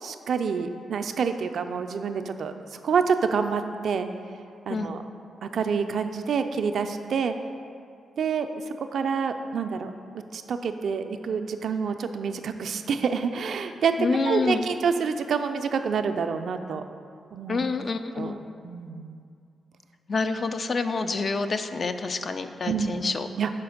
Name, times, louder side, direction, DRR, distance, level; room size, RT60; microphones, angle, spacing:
voice 1, 0.0-4.1 4.7-5.0 5.4-7.3 8.2-9.9 10.3-13.9 14.3-16.8 17.3-17.6 18.2-18.3 18.6-19.2 22.7-23.0 23.4-23.5, right 6 dB, 70° right, 7 dB, 0.4 m, -27 dB
voice 2, 14.0-14.7 17.5-18.4 20.1-23.3, left 4 dB, 50° left, 8 dB, 0.4 m, -27 dB
5.8 x 4.3 x 6.3 m, 2.3 s
supercardioid pair, 55°, 0 cm